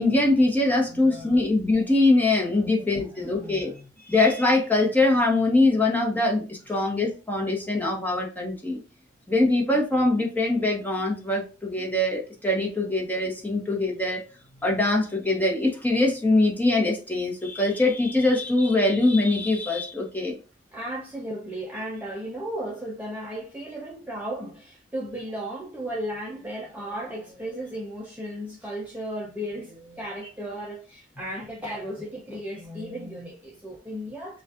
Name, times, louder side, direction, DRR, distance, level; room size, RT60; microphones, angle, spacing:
voice 1, 0.0-3.7 4.1-8.8 9.3-14.2 14.6-20.4, left 2 dB, 10° left, 1.0 m, -23 dB
voice 2, 0.9-1.4 2.6-3.9 6.7-6.8 20.7-34.4, right 1 dB, 10° right, 0.6 m, -35 dB
6.9 x 2.4 x 2.5 m
head